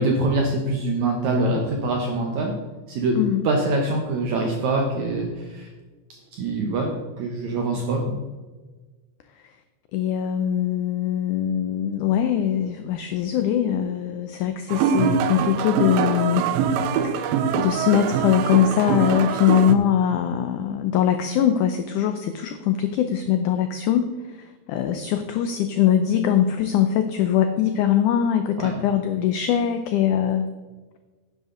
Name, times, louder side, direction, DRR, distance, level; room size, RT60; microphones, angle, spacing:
voice 1, 0.0-2.5 2.9-3.2 3.4-5.7 6.3-8.2 28.6-28.7, right 2 dB, 65° right, 1 dB, 1.9 m, -24 dB
voice 2, 3.2-3.5 9.9-16.5 17.0-30.5, left 9 dB, 85° left, 8 dB, 1.8 m, -22 dB
sound 1, 14.7-19.8, right 7 dB, 85° right, 2.3 m, -23 dB
10.5 x 9.9 x 3.8 m, 1.3 s
omnidirectional pair, 4.3 m